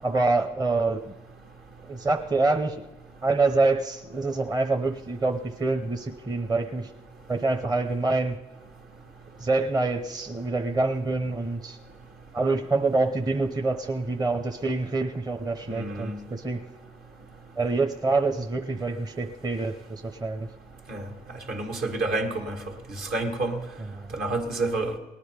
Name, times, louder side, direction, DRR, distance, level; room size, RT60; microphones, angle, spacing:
voice 1, 0.0-1.1 1.8-2.8 3.2-6.9 7.3-8.4 9.4-11.8 12.3-16.7 17.6-20.5 23.8-24.1, right 3 dB, 25° right, 0.9 m, -26 dB
voice 2, 15.7-16.2 20.9-21.0 21.5-22.6 23.1-23.6 24.1-24.9, right 2 dB, 65° right, 2.1 m, -28 dB
18.5 x 10.0 x 5.1 m
supercardioid pair, 55°, 17 cm